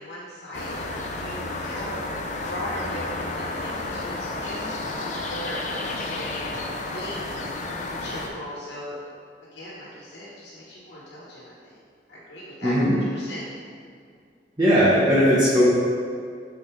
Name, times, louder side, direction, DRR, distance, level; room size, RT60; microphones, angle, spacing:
voice 1, 0.0-2.0 2.4-6.7 6.9-9.0 9.5-11.8 12.1-13.4, equal, 80° left, -7 dB, 1.3 m, -38 dB
sound 1, 0.5-8.3, left 2 dB, 45° left, 0.6 m, -31 dB
voice 2, 12.6-13.0 14.6-15.7, equal, 25° right, -9 dB, 1.0 m, -18 dB
7.0 x 4.1 x 3.3 m, 2.2 s
head